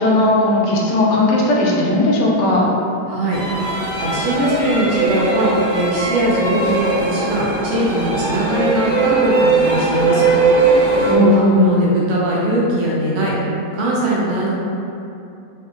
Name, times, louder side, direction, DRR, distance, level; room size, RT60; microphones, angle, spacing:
voice 1, 0.0-2.6 11.0-11.8, left 2 dB, 80° left, -3 dB, 1.2 m, -16 dB
voice 2, 3.1-10.3 11.1-13.3 13.7-14.5, right 1 dB, 90° right, -6 dB, 1.4 m, -20 dB
sound 1, 3.3-11.1, right 3 dB, 65° right, 1.1 m, -19 dB
3.9 x 2.5 x 2.4 m, 2.7 s
omnidirectional pair, 1.8 m